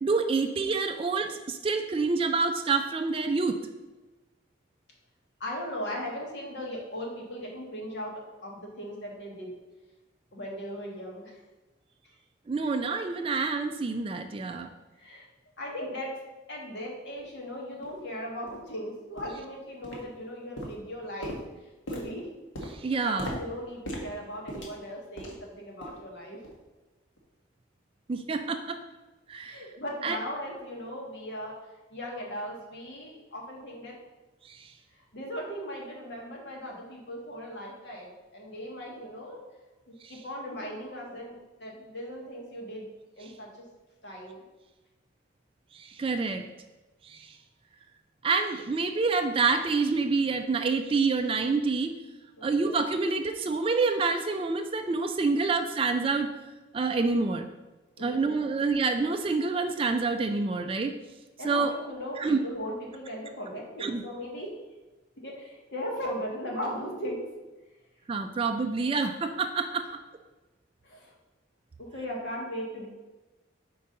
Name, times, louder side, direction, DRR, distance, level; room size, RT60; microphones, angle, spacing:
voice 1, 0.0-3.6 12.5-14.7 22.7-23.3 28.1-28.8 29.3-29.6 30.0-30.2 34.4-34.7 40.0-40.2 45.7-46.5 47.0-47.4 48.2-52.0 52.4-56.3 56.7-57.5 58.0-61.0 61.4-61.7 62.2-62.4 63.8-64.0 68.1-70.0, right 4 dB, 30° right, 7 dB, 0.3 m, -27 dB
voice 2, 5.4-8.1 8.4-9.5 10.3-11.4 15.0-15.2 15.6-16.1 16.5-21.4 21.9-22.3 22.9-26.4 29.4-31.5 31.9-33.9 34.9-39.4 39.9-42.9 43.2-43.6 44.0-44.4 52.4-52.6 58.0-58.2 61.4-64.5 65.2-67.3 70.8-71.1 71.8-72.9, equal, 60° left, -2 dB, 1.5 m, -38 dB
sound 1, 17.2-17.3 17.8-17.9 18.5-18.6 19.2-19.5 19.8-20.3 20.6-25.5 25.8-26.1 26.4-26.6 27.2-27.3, equal, 85° left, 1.2 m, -40 dB
4.6 x 3.9 x 5.4 m, 1.1 s
head